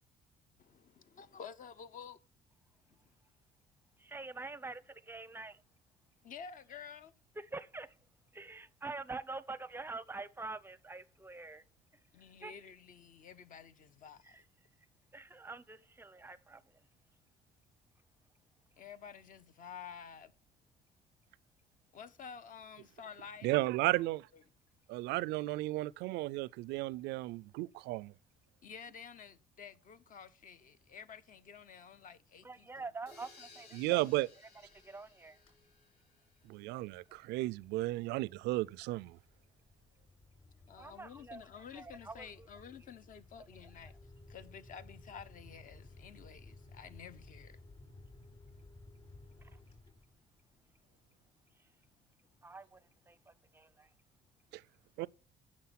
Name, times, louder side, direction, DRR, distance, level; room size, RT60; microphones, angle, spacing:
voice 1, 0.6-2.2 2.9-3.0 6.2-7.1 12.1-14.4 18.8-20.3 21.9-23.6 24.3-24.4 25.5-25.6 28.6-32.9 40.7-44.0 44.3-47.6, left 7 dB, 50° left, 0.9 m, -51 dB
voice 2, 4.0-5.6 7.4-8.0 8.3-11.6 12.4-12.5 14.2-14.4 15.1-16.8 32.4-34.0 34.7-35.4 40.6-42.5 42.8-42.9 43.4-43.5 43.8-43.9 49.4-49.6 52.4-52.8 53.1-53.9, right 3 dB, 15° right, 0.6 m, -46 dB
voice 3, 23.4-24.3 24.9-28.1 33.7-34.3 36.5-39.2 54.5-54.6 55.0-55.1, right 19 dB, 85° right, 0.4 m, -34 dB
sound 1, 33.1-36.8, left 4 dB, 75° left, 5.3 m, -60 dB
sound 2, 34.6-35.1 35.4-35.7 36.2-50.5, left 2 dB, 35° left, 5.2 m, -57 dB
9.4 x 6.3 x 5.8 m
cardioid pair, 110°, 17 cm